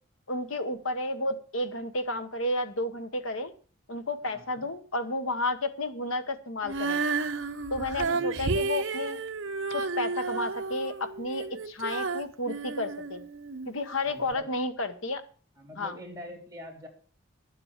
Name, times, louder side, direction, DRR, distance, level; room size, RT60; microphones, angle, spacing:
voice 1, 0.3-3.5 3.9-7.0 7.7-9.2 9.7-13.2 13.7-15.2 15.8-16.0, left 2 dB, 80° left, 9 dB, 1.4 m, -32 dB
voice 2, 4.2-4.6 8.0-8.6 14.0-14.5 15.6-16.9, equal, 15° right, -1 dB, 3.4 m, -44 dB
Female singing, 6.6-13.7 14.3-14.4, right 4 dB, 70° right, 1.0 m, -32 dB
11.0 x 7.9 x 7.4 m, 0.41 s
head